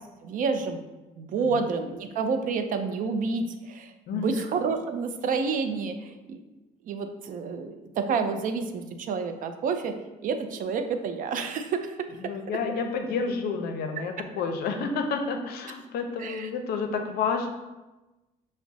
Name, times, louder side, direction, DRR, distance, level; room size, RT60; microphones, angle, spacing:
voice 1, 0.2-0.8 1.2-6.4 6.9-9.9 10.2-12.0 16.2-16.5, right 5 dB, 50° right, 7 dB, 0.4 m, -29 dB
voice 2, 12.2-17.5, left 5 dB, 65° left, 5 dB, 0.5 m, -30 dB
5.9 x 2.0 x 2.6 m, 1.1 s
cardioid pair, 110°, 17 cm